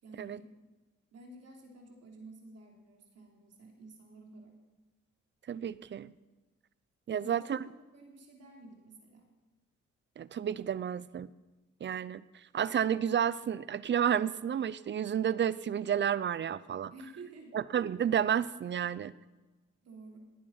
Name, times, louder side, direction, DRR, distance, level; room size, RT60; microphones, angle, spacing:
voice 1, 0.0-0.5 1.1-4.5 7.1-9.3 16.9-17.6 19.8-20.2, right 2 dB, 55° right, 1 dB, 3.2 m, -51 dB
voice 2, 5.5-6.1 7.1-7.6 10.2-11.3 11.8-12.2 12.5-16.9 17.5-19.1, right 9 dB, 40° right, 18 dB, 0.5 m, -31 dB
19.0 x 8.8 x 5.5 m, 1.2 s
cardioid pair, 90°, 30 cm